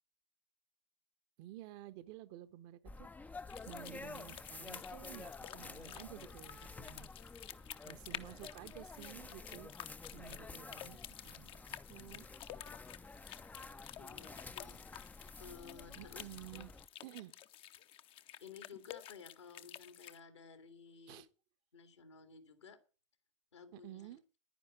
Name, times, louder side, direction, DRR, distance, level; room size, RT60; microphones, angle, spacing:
voice 1, 1.4-7.1 7.8-9.7 10.1-12.3 16.0-16.7 17.0-17.3 21.1-21.3 23.7-24.2, right 14 dB, 50° right, 1.1 m, -52 dB
sound 1, 2.9-16.9, left 3 dB, 10° left, 0.6 m, -51 dB
sound 2, 3.5-20.2, left 12 dB, 35° left, 0.9 m, -52 dB
voice 2, 14.0-14.8 15.4-16.3 18.4-21.2 21.7-22.8 23.5-24.1, left 6 dB, 75° left, 2.5 m, -55 dB
10.5 x 10.0 x 7.2 m
figure-of-eight pair, 80°, 15 cm